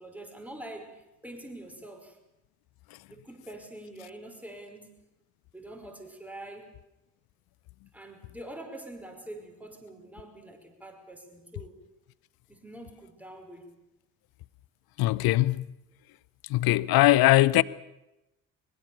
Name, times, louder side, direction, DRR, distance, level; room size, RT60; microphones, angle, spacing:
voice 1, 0.0-2.2 3.1-4.9 5.5-6.8 7.9-11.8 12.5-13.7, right 1 dB, 5° right, 5.1 m, -45 dB
voice 2, 15.0-15.6 16.5-17.6, left 17 dB, 55° left, 0.8 m, -21 dB
22.0 x 22.0 x 7.0 m
figure-of-eight pair, 40°, 45 cm